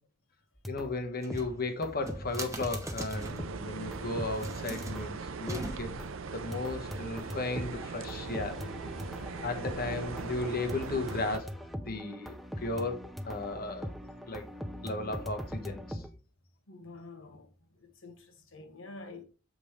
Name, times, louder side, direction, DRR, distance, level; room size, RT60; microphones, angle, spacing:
sound 1, 0.6-1.0 1.3-5.2 5.5-6.2 6.5-16.1, equal, ahead, 0.6 m, -41 dB
voice 1, 0.7-5.9 6.3-8.7 9.4-11.5 11.9-13.9 14.3-14.5 14.8-16.0, left 2 dB, 50° left, 1.2 m, -35 dB
sound 2, 1.2-3.6 4.2-6.2, right 2 dB, 15° right, 1.1 m, -42 dB
sound 3, 3.1-11.4, right 4 dB, 80° right, 0.6 m, -40 dB
voice 2, 9.4-9.8 16.7-17.5 18.0-18.3 18.5-19.2, left 2 dB, 75° left, 1.4 m, -47 dB
7.4 x 5.1 x 3.2 m
head